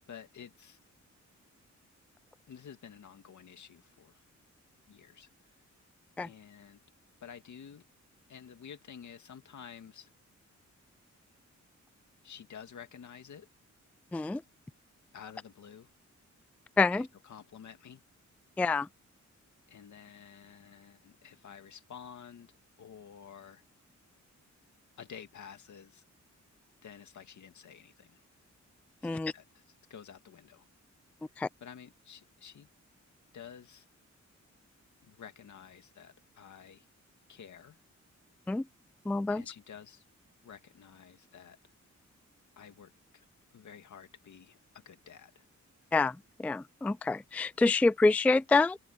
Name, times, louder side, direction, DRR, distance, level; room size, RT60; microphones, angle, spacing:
voice 1, 0.1-0.8 2.5-4.2 4.9-5.6 6.2-6.8 7.2-7.9 8.3-10.1 12.2-13.5 15.1-15.9 16.9-18.0 19.7-22.5 22.8-23.6 25.0-26.0 26.8-28.2 29.0-29.6 29.9-30.7 31.6-32.7 33.3-33.9 35.0-36.8 37.3-37.8 39.3-40.0 40.4-41.6 42.6-43.3 43.5-45.4, left 8 dB, 75° left, 2.3 m, -51 dB
voice 2, 14.1-14.4 16.8-17.1 18.6-18.9 29.0-29.3 31.4-31.5 38.5-38.7 39.1-39.4 45.9-48.8, left 3 dB, 5° left, 0.3 m, -27 dB
open air
wide cardioid pair, 165°, 29 cm